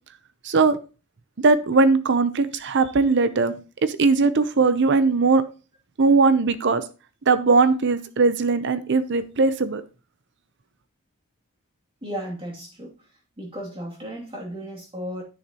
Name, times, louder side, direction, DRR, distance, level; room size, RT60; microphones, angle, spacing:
voice 1, 0.4-0.8 1.4-3.5 3.8-5.4 6.0-6.8 7.3-9.8, right 4 dB, 55° right, 0.7 m, -19 dB
voice 2, 12.0-12.9 13.4-15.2, equal, 25° right, 2.5 m, -34 dB
10.5 x 6.5 x 2.9 m
head